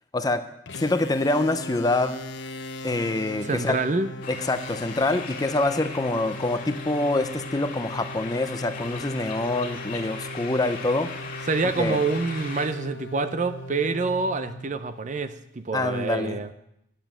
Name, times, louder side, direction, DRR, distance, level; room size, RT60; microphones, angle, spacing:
sound 1, 0.7-15.2, left 1 dB, 75° left, 0.8 m, -39 dB
voice 1, 0.8-2.2 2.8-3.8 4.3-11.1 11.8-12.0 15.7-16.4, left 2 dB, 20° left, 10 dB, 0.5 m, -25 dB
voice 2, 3.4-4.1 11.5-16.5, right 3 dB, 40° right, 11 dB, 0.6 m, -27 dB
sound 2, 4.2-12.7, left 5 dB, 50° left, 2.0 m, -39 dB
10.0 x 7.1 x 7.4 m, 0.80 s
head